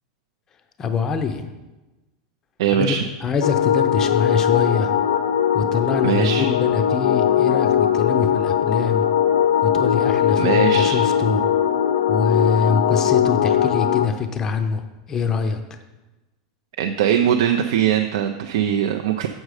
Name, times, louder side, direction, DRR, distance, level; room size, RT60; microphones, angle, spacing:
voice 1, 0.8-1.5 2.8-3.0 3.2-4.9 5.5-9.1 9.6-11.5 12.1-15.8, left 5 dB, 15° left, 7 dB, 0.5 m, -24 dB
voice 2, 2.6-3.0 6.0-6.5 10.4-11.0 16.8-19.3, right 9 dB, 65° right, 5 dB, 0.5 m, -21 dB
sound 1, 3.4-14.1, left 9 dB, 85° left, 0.6 m, -19 dB
7.4 x 6.3 x 4.8 m, 1.1 s
supercardioid pair, 180°, 3 cm